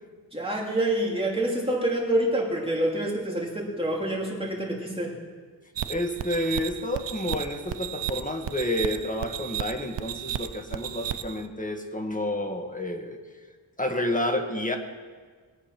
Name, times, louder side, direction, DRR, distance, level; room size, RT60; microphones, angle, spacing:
voice 1, 0.3-5.2, right 1 dB, 15° right, -3 dB, 3.2 m, -27 dB
sound 1, 5.8-11.5, right 11 dB, 85° right, 0.7 m, -34 dB
voice 2, 5.9-13.2 13.8-14.8, left 1 dB, 20° left, 4 dB, 1.5 m, -29 dB
21.5 x 8.0 x 5.9 m, 1.5 s
wide cardioid pair, 100°, 42 cm